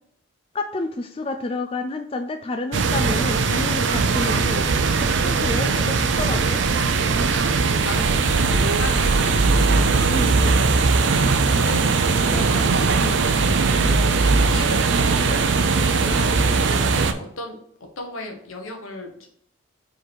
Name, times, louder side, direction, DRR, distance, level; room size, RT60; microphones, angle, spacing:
voice 1, 0.5-6.6 10.1-10.7 12.3-13.2 13.8-13.9, left 2 dB, 25° left, 6 dB, 0.3 m, -30 dB
sound 1, 2.7-17.1, right 4 dB, 60° right, 0.5 m, -19 dB
voice 2, 7.2-9.0 10.2-12.4 13.3-19.3, left 2 dB, 85° left, 3 dB, 1.3 m, -37 dB
5.1 x 4.0 x 4.6 m, 0.64 s
head